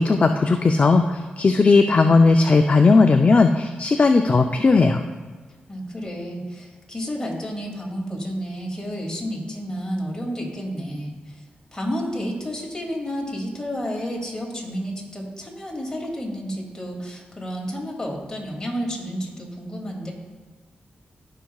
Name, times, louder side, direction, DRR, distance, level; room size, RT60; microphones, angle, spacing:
voice 1, 0.0-5.0, left 3 dB, 40° left, 5 dB, 0.4 m, -17 dB
voice 2, 5.7-11.4 11.7-20.1, equal, 20° left, -2 dB, 2.5 m, -31 dB
14.5 x 5.8 x 2.4 m, 1.4 s
cardioid pair, 65°, 3 cm